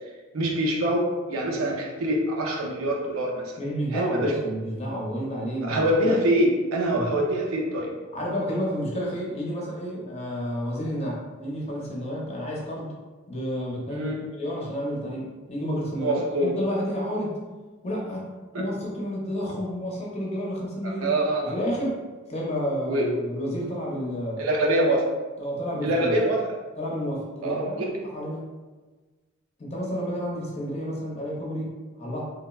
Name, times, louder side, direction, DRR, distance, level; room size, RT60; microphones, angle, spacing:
voice 1, 0.3-3.6 3.9-4.3 5.6-7.9 13.9-14.2 16.0-16.5 18.5-18.6 20.8-21.6 22.9-23.1 24.4-25.1 25.8-26.6 27.4-27.9, right 1 dB, 85° right, -1 dB, 0.5 m, -24 dB
voice 2, 3.6-6.1 6.9-7.0 8.1-12.9 13.3-17.4 17.8-18.2 18.6-21.1 21.4-22.0 22.3-24.5 25.4-26.1 26.8-28.5 29.6-32.2, equal, 30° left, -4 dB, 0.6 m, -30 dB
3.2 x 2.0 x 2.3 m, 1.3 s
head